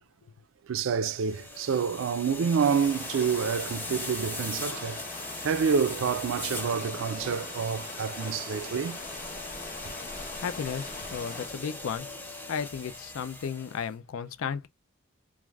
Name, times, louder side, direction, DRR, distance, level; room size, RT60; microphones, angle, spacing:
voice 1, 0.7-5.1 5.4-9.0 9.8-9.9, right 6 dB, 75° right, 0.3 m, -28 dB
sound 1, 1.2-13.9, left 2 dB, 10° left, 0.4 m, -39 dB
sound 2, 2.6-11.5, left 3 dB, 45° left, 0.9 m, -43 dB
voice 2, 10.0-12.1 12.5-14.7, left 7 dB, 85° left, 0.4 m, -34 dB
3.2 x 2.4 x 2.3 m
head